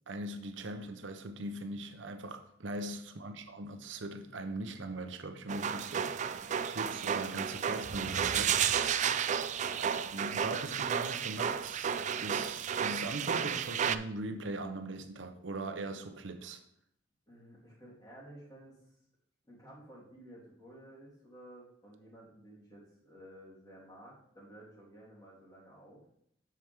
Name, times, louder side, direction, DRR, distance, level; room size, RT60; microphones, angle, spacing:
voice 1, 0.1-9.0 9.8-16.6, right 2 dB, 80° right, 0.8 m, -41 dB
sound 1, 5.5-14.0, right 8 dB, 40° right, 0.3 m, -32 dB
voice 2, 9.6-9.9 17.3-18.8 19.5-26.0, right 1 dB, 20° left, 3.1 m, -54 dB
7.7 x 6.9 x 3.5 m
head